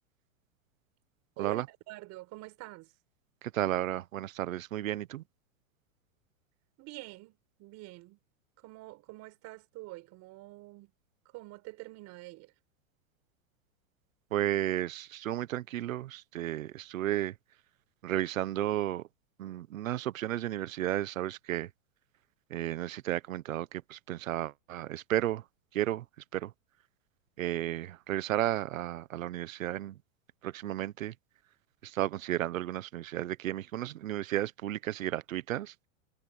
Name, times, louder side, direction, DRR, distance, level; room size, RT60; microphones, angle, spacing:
voice 1, 1.4-2.9 6.8-8.2 8.6-10.9 11.3-12.5, right 20 dB, 45° right, 5.4 m, -46 dB
voice 2, 3.5-5.2 14.3-17.3 18.0-19.0 19.4-21.7 22.5-25.4 25.7-26.0 26.3-26.5 27.4-29.9 30.4-31.1 31.8-35.7, right 13 dB, 85° right, 1.2 m, -33 dB
supercardioid pair, 130°, 39 cm